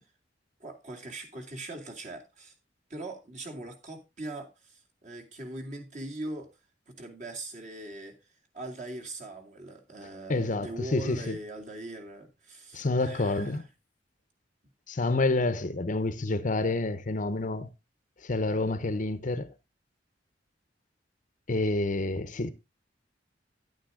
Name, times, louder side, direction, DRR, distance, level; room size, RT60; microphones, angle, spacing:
voice 1, 0.6-2.5 2.9-6.5 6.9-8.2 8.5-13.7, right 2 dB, 40° right, 2.5 m, -41 dB
voice 2, 10.3-11.4 12.7-13.6 14.9-17.7 18.2-19.5 21.5-22.5, left 2 dB, 45° left, 0.8 m, -28 dB
10.5 x 8.9 x 3.7 m
head